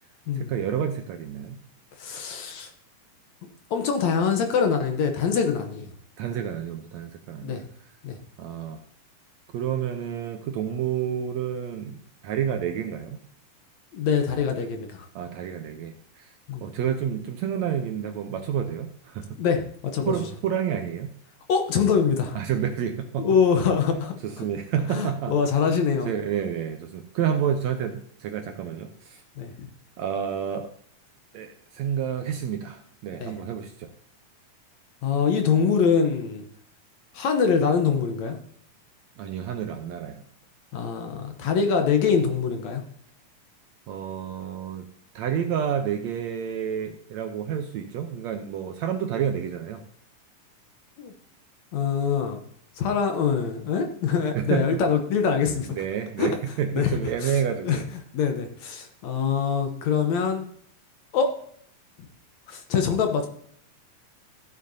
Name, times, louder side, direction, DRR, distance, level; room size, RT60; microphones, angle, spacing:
voice 1, 0.4-1.6 6.2-7.6 8.4-8.8 9.5-12.0 12.2-13.2 15.1-16.3 16.6-19.4 20.1-21.1 22.3-23.3 24.2-25.4 26.0-29.2 30.0-30.7 31.3-33.9 39.2-40.2 43.9-44.9 45.1-49.8 54.3-54.8 55.7-57.8, right 8 dB, 75° right, 6 dB, 1.7 m, -29 dB
voice 2, 2.0-2.7 3.7-5.9 7.4-7.6 8.0-8.2 13.9-15.1 16.5-16.6 19.4-19.6 19.9-20.1 21.5-22.4 23.2-24.1 24.9-26.1 29.4-29.5 33.2-33.4 35.0-36.5 37.1-38.4 40.7-42.8 51.0-51.1 51.7-52.4 52.8-55.7 56.2-56.3 56.7-56.9 57.2-57.8 58.1-60.5 61.1-61.3 62.5-63.3, left 6 dB, 70° left, 5 dB, 2.0 m, -24 dB
14.5 x 7.6 x 2.7 m, 0.64 s
omnidirectional pair, 3.7 m